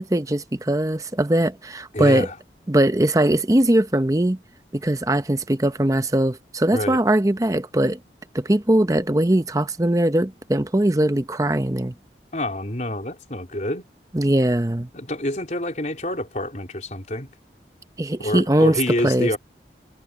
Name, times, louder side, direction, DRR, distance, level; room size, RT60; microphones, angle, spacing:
voice 1, 0.0-2.3 2.7-4.4 4.7-8.0 8.3-11.9 14.1-14.9 18.0-19.3, right 1 dB, 20° right, 0.8 m, -20 dB
voice 2, 1.9-2.4 6.7-7.0 12.3-13.9 14.9-17.3 18.2-19.4, left 1 dB, 45° left, 4.1 m, -27 dB
head